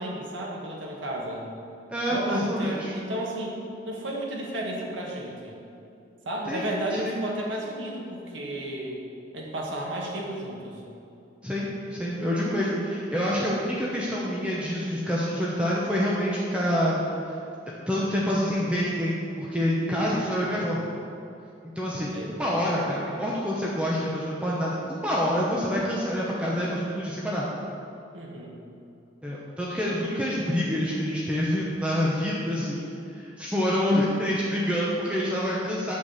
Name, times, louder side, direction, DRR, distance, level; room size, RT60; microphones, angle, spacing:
voice 1, 0.0-1.5 2.1-5.6 6.2-9.0 9.3-10.8 19.9-20.7 21.9-22.4 28.1-28.5, right 1 dB, 85° right, -2 dB, 1.7 m, -33 dB
voice 2, 1.9-2.9 6.5-6.7 7.0-7.2 11.4-17.4 17.9-20.8 21.8-22.1 22.4-27.4 29.2-32.9 33.1-35.9, equal, 5° right, -6 dB, 0.9 m, -27 dB
6.4 x 6.0 x 7.4 m, 2.6 s
head